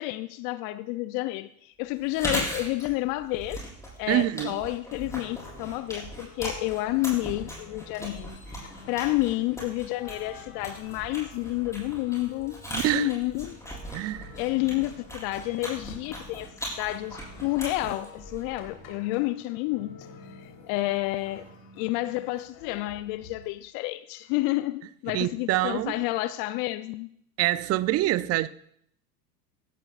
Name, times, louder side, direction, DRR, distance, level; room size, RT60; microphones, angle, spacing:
voice 1, 0.0-3.6 4.0-12.6 12.9-13.6 14.4-20.0 20.3-21.5 21.8-27.1, left 18 dB, 45° left, 0.6 m, -30 dB
Chewing mastication, 2.0-18.9, equal, 5° left, 6.2 m, -39 dB
voice 2, 4.1-4.6 12.7-13.1 13.9-14.3 25.1-25.9 27.4-28.5, right 15 dB, 35° right, 0.5 m, -25 dB
sound 1, 5.0-23.5, left 3 dB, 65° left, 3.8 m, -50 dB
16.5 x 14.5 x 2.5 m
hypercardioid pair, 90°, 48 cm